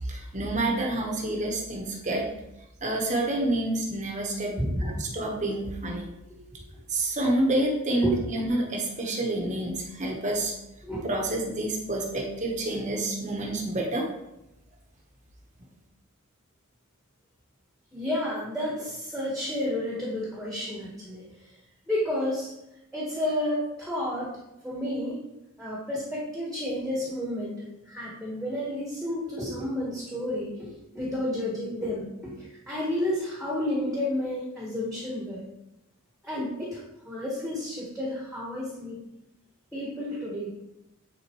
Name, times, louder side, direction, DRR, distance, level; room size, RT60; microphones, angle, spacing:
voice 1, 0.1-2.2 2.8-6.1 6.9-10.5 11.0-14.1, right 1 dB, 35° right, 0 dB, 1.0 m, -28 dB
voice 2, 4.6-5.3 6.3-6.4 6.7-6.8 8.0-8.2 10.8-11.1 17.9-21.2 21.9-22.5 22.9-24.3 24.6-25.2 25.6-35.4 36.2-39.0 39.7-40.5, left 1 dB, ahead, -6 dB, 1.3 m, -31 dB
9.6 x 3.9 x 3.0 m, 0.88 s
head